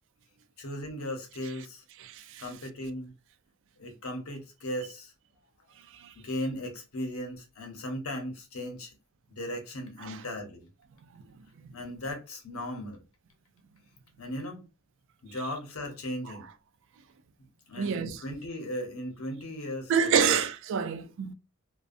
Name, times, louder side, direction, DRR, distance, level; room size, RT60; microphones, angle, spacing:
voice 1, 0.6-1.8 2.4-3.1 3.8-5.1 6.1-8.9 9.3-10.7 11.7-13.0 14.2-14.6 15.2-16.5 17.7-20.4, left 1 dB, 75° left, 0.8 m, -37 dB
voice 2, 2.0-2.4 5.9-6.1 10.0-10.2 11.1-11.2 11.6-11.7 17.8-18.2 19.9-21.3, right 7 dB, 60° right, 0.3 m, -28 dB
2.5 x 2.2 x 2.4 m
head